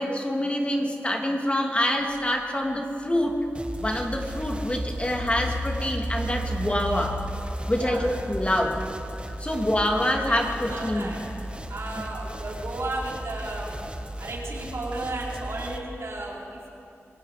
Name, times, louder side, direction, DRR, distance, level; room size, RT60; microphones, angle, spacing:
voice 1, 0.0-3.5 3.8-7.2 7.7-8.8 9.4-11.1, left 1 dB, 25° left, 2 dB, 2.5 m, -26 dB
Engine, 2.2-2.3 2.9-8.8, equal, 40° left, 4.3 m, -35 dB
sound 1, 3.5-15.8, right 1 dB, 20° right, 1.5 m, -37 dB
voice 2, 7.7-8.1 9.5-9.8 10.1-11.2 11.7-13.8 14.2-16.7, right 2 dB, 70° right, -3 dB, 4.2 m, -34 dB
26.5 x 19.0 x 5.1 m, 2.8 s
cardioid pair, 50°, 5 cm